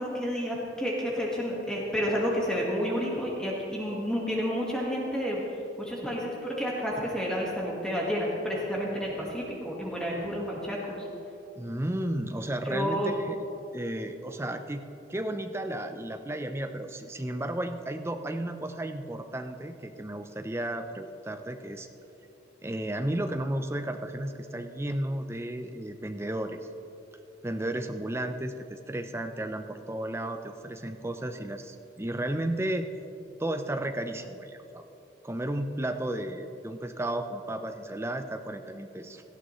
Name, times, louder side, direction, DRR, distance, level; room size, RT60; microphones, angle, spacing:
voice 1, 0.0-11.1 12.6-13.2, equal, 5° left, -4 dB, 1.5 m, -30 dB
voice 2, 11.6-13.4 13.7-14.8 15.1-21.9 22.6-26.7 27.4-32.9 33.4-34.9 35.2-39.2, right 1 dB, 15° right, 6 dB, 0.5 m, -33 dB
18.0 x 13.5 x 3.1 m, 2.9 s
head